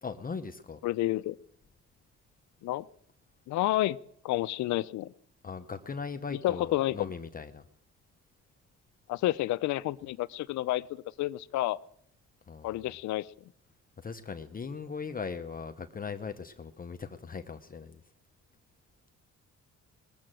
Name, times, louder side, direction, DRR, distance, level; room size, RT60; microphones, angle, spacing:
voice 1, 0.0-0.8 5.4-7.6 12.5-12.8 14.0-18.0, left 5 dB, 30° left, 7 dB, 0.8 m, -39 dB
voice 2, 0.8-1.3 2.6-2.8 3.5-4.0 4.2-5.1 6.4-7.1 9.1-10.8 11.2-11.8 12.6-13.3, left 16 dB, 70° left, 14 dB, 0.5 m, -29 dB
20.5 x 7.7 x 7.5 m, 0.74 s
cardioid pair, 90°, 30 cm